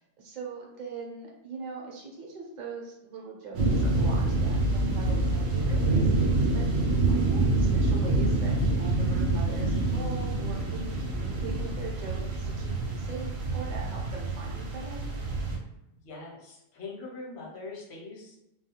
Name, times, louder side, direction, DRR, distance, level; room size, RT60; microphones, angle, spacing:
voice 1, 0.0-15.1, right 4 dB, 50° right, -2 dB, 0.6 m, -41 dB
sound 1, 3.5-15.6, right 2 dB, 65° right, 0.9 m, -26 dB
voice 2, 15.9-18.4, left 3 dB, 60° left, -2 dB, 0.9 m, -42 dB
2.3 x 2.3 x 2.8 m, 0.89 s
omnidirectional pair, 1.3 m